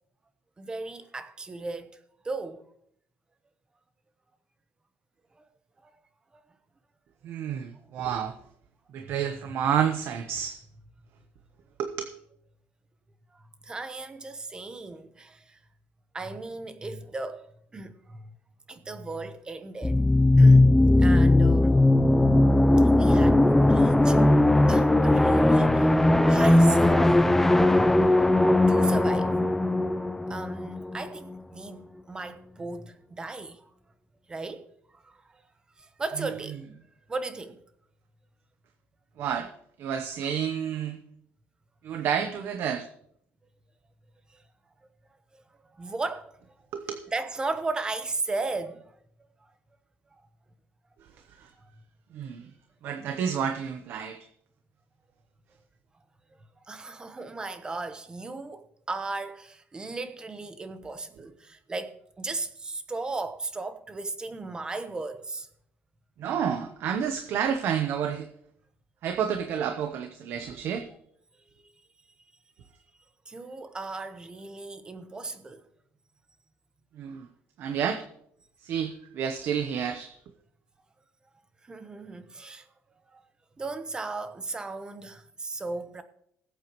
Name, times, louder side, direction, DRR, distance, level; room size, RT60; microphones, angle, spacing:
voice 1, 0.6-2.0 2.2-2.6 5.4-5.5 5.8-5.9 6.3-6.4 9.0-9.1 13.3-15.6 16.1-18.3 18.7-20.0 20.4-20.7 21.0-21.7 22.8-24.2 24.7-27.4 28.7-29.3 30.3-31.8 32.1-33.7 34.3-34.7 34.9-35.4 35.8-36.6 37.1-37.6 44.3-44.4 45.3-45.4 45.7-46.4 47.1-48.8 51.6-51.7 56.7-65.5 73.3-75.6 81.6-82.7 83.1-83.2 83.6-86.0, right 3 dB, 15° right, 1.0 m, -36 dB
voice 2, 7.2-8.3 8.9-10.6 11.8-12.1 36.2-36.3 39.2-39.5 39.8-41.0 41.8-42.9 46.7-47.0 51.4-51.5 52.1-52.5 52.8-54.2 66.2-68.3 69.0-70.9 77.0-77.3 77.6-78.0 78.6-80.1, right 8 dB, 55° right, 0.9 m, -29 dB
sound 1, 19.8-31.4, left 1 dB, 5° left, 0.5 m, -19 dB
20.0 x 8.3 x 3.1 m
cardioid pair, 150°, 5 cm